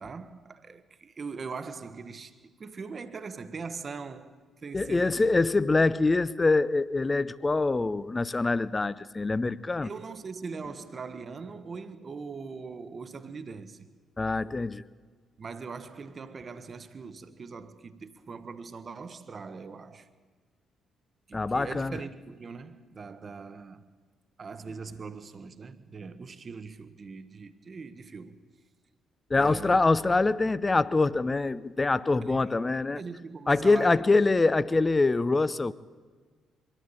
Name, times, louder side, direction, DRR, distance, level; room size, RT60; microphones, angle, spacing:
voice 1, 0.0-5.4 9.8-13.9 15.4-20.1 21.3-23.8 24.4-28.4 29.4-29.8 32.3-34.1 34.4-34.5, right 4 dB, 40° right, 1.2 m, -41 dB
voice 2, 4.7-9.9 14.2-14.8 21.3-22.0 29.3-33.0 33.5-35.7, left 3 dB, 25° left, 0.7 m, -24 dB
23.5 x 13.5 x 9.0 m
figure-of-eight pair, 45°, 0 cm